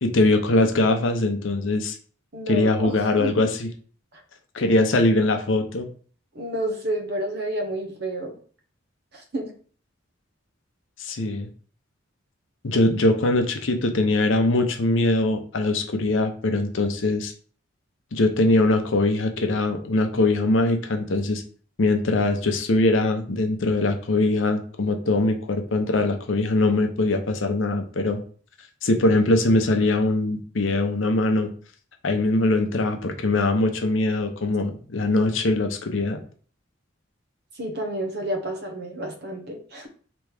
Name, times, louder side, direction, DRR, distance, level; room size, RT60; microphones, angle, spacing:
voice 1, 0.0-2.0 2.5-3.7 4.5-5.9 11.0-11.5 12.6-17.3 18.1-21.4 21.8-28.2 28.8-31.5 32.0-36.2, left 2 dB, 75° left, 5 dB, 0.7 m, -22 dB
voice 2, 2.3-3.5 6.3-8.4 9.1-9.5 37.6-39.9, right 1 dB, 55° right, 4 dB, 0.9 m, -30 dB
3.5 x 3.0 x 4.8 m, 0.43 s
head